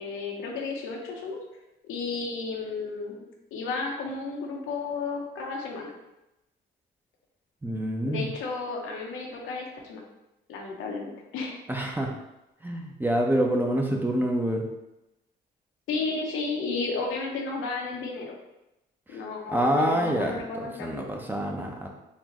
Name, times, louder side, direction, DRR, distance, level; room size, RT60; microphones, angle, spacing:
voice 1, 0.0-1.4 1.8-3.2 3.5-5.9 8.1-10.0 10.5-11.5 15.9-18.3 19.1-21.1, left 4 dB, 85° left, 0 dB, 0.9 m, -33 dB
voice 2, 7.6-8.3 11.7-12.1 12.6-14.6 19.5-20.4 20.8-21.9, right 1 dB, 10° right, 1 dB, 0.7 m, -26 dB
4.3 x 3.1 x 3.0 m, 0.92 s
cardioid pair, 90°, 20 cm